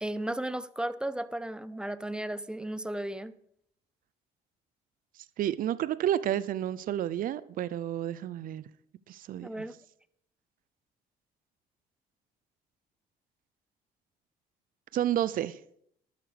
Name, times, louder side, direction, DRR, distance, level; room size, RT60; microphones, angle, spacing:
voice 1, 0.0-3.3 9.4-9.8, right 1 dB, 5° right, 0.6 m, -34 dB
voice 2, 5.4-8.6 9.1-9.6 14.9-15.6, right 11 dB, 55° right, 0.6 m, -30 dB
12.5 x 9.3 x 5.1 m
cardioid pair, 110°, 17 cm